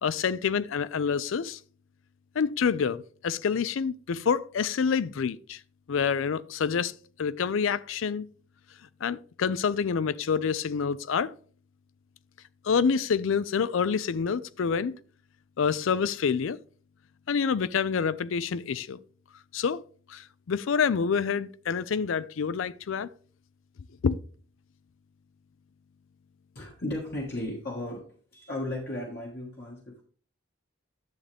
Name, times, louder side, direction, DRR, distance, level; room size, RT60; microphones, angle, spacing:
voice 1, 0.0-1.6 2.4-5.6 5.9-6.9 7.2-8.3 9.0-11.3 12.6-14.9 15.6-16.6 17.3-19.0 19.5-19.8 20.1-23.1 24.0-24.2, left 6 dB, 70° left, 0.4 m, -27 dB
voice 2, 26.5-28.0 28.3-30.0, left 1 dB, 50° left, 1.6 m, -35 dB
10.5 x 7.3 x 3.4 m
head